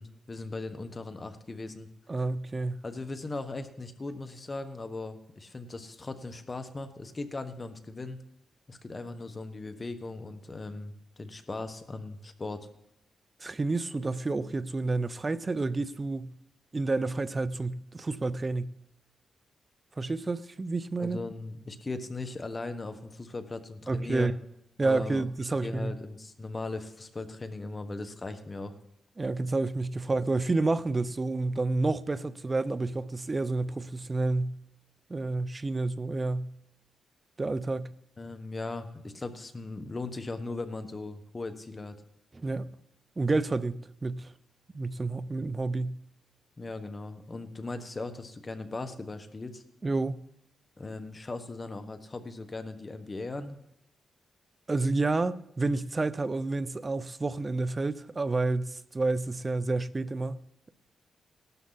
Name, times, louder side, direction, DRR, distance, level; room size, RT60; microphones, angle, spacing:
voice 1, 0.0-1.9 2.8-8.2 8.7-12.7 21.0-24.3 24.8-28.7 38.2-42.0 46.6-49.6 50.8-53.6, left 3 dB, 30° left, 1.4 m, -38 dB
voice 2, 2.1-2.8 13.4-16.3 16.7-18.7 20.0-21.2 23.9-24.3 24.8-25.9 29.2-34.6 35.1-36.5 37.4-37.9 42.3-42.7 43.2-44.3 44.7-46.0 49.8-50.2 54.7-60.4, right 3 dB, 30° right, 0.7 m, -29 dB
17.5 x 12.5 x 4.1 m
cardioid pair, 85°, 0 cm